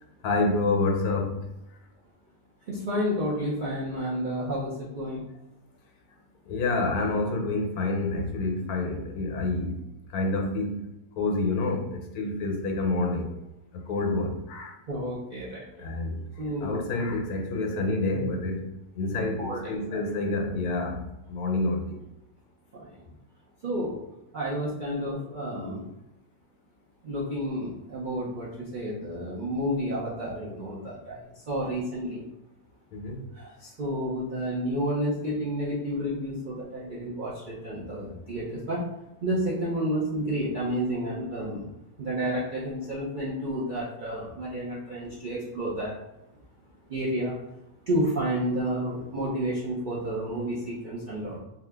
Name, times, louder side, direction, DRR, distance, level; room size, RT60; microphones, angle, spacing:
voice 1, 0.2-1.3 6.5-9.7 10.1-10.7 11.2-13.3 13.9-14.7 15.8-16.2 16.6-18.6 19.0-21.0 21.3-22.0 32.9-33.2, left 2 dB, 80° left, 3 dB, 1.1 m, -28 dB
voice 2, 2.7-5.2 14.9-15.8 16.4-16.8 19.4-20.0 22.7-22.9 23.6-24.0 24.3-25.8 27.0-31.2 31.5-32.2 33.3-38.8 39.2-41.7 42.0-45.9 46.9-47.4 47.9-51.4, equal, 60° right, -7 dB, 0.5 m, -30 dB
2.7 x 2.4 x 3.3 m, 0.91 s
omnidirectional pair, 1.6 m